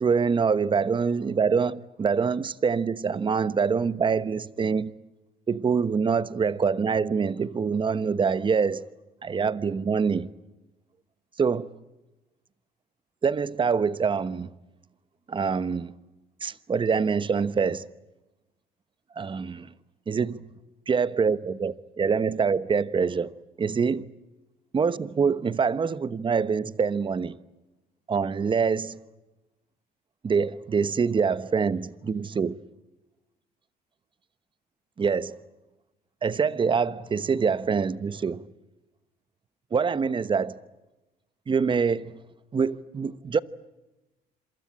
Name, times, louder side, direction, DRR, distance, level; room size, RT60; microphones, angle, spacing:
voice 1, 0.0-4.9 5.5-8.8 9.2-10.3 11.4-11.7 13.2-14.5 15.3-15.9 16.4-17.8 19.2-19.7 20.1-20.4 20.9-23.3 23.6-24.0 24.7-27.4 28.1-28.9 30.2-32.5 35.0-35.4 36.2-38.4 39.7-40.6 41.5-42.2 42.5-43.4, right 5 dB, 30° right, 1.1 m, -25 dB
27.0 x 23.5 x 8.6 m
cardioid pair, 110°, 17 cm